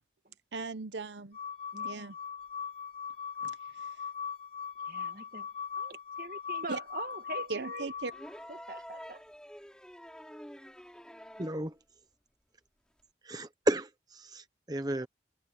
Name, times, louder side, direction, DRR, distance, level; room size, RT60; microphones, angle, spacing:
voice 1, 0.5-1.4 1.8-2.1 3.4-3.9 6.7-6.8 7.5-8.1, right 4 dB, 90° right, 0.9 m, -38 dB
sound 1, 1.3-8.4, left 7 dB, 35° left, 3.5 m, -40 dB
voice 2, 1.7-2.1 4.8-5.5 5.8-7.9 8.5-9.2, right 3 dB, 50° right, 1.9 m, -43 dB
sound 2, 8.1-11.7 13.0-13.1, equal, 5° left, 6.0 m, -48 dB
voice 3, 11.4-11.7 13.2-15.1, right 1 dB, 20° right, 0.9 m, -33 dB
head